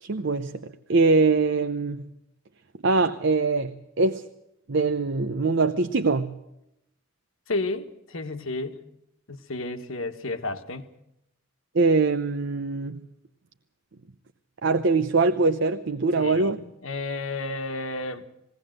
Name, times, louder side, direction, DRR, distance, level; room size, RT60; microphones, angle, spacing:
voice 1, 0.0-2.0 2.8-4.2 4.7-6.3 11.7-13.0 14.6-16.6, right 3 dB, 60° right, 0.7 m, -23 dB
voice 2, 7.5-8.8 9.3-10.9 16.1-18.3, left 2 dB, 80° left, 1.5 m, -32 dB
20.0 x 17.5 x 7.7 m
head